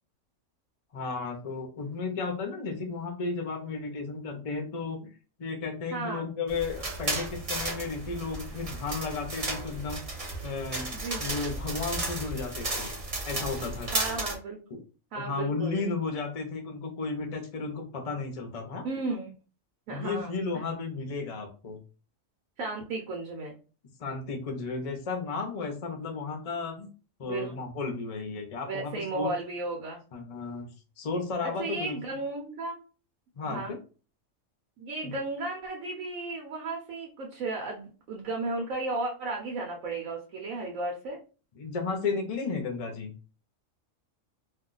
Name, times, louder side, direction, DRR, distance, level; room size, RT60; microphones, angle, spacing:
voice 1, 0.9-5.0 5.4-10.0 10.4-10.9 11.2-12.9 13.3-13.9 14.7-14.8 15.1-18.9 19.9-21.8 24.0-26.9 27.2-29.3 30.1-30.7 31.0-32.0 33.4-33.8 35.0-35.1 41.6-43.1, left 4 dB, 40° left, 3 dB, 0.6 m, -33 dB
voice 2, 5.9-6.3 10.9-11.3 13.9-14.6 15.1-15.9 18.8-19.3 19.9-20.6 22.6-23.5 27.2-27.5 28.6-30.0 31.4-32.8 33.4-33.8 34.8-41.2, right 3 dB, 85° right, 0 dB, 1.1 m, -34 dB
sound 1, 6.5-14.4, right 2 dB, 35° right, 0.7 m, -34 dB
2.6 x 2.2 x 3.8 m, 0.35 s
omnidirectional pair, 1.4 m